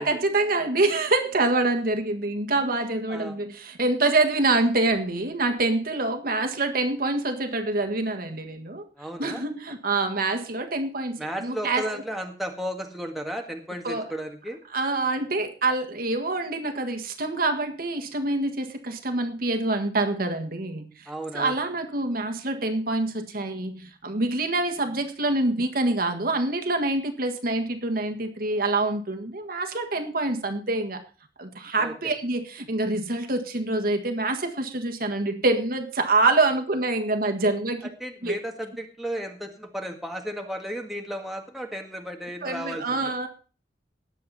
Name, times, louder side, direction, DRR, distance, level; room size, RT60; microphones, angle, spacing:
voice 1, 0.0-8.8 9.2-12.0 13.8-14.1 14.7-21.1 21.3-31.0 31.4-37.9 38.2-38.4 42.4-43.3, right 2 dB, 55° right, 5 dB, 1.6 m, -26 dB
voice 2, 9.0-9.4 11.2-14.6 21.1-21.6 31.8-32.1 37.8-43.0, equal, ahead, 2 dB, 1.7 m, -34 dB
19.0 x 7.5 x 4.2 m, 0.37 s
head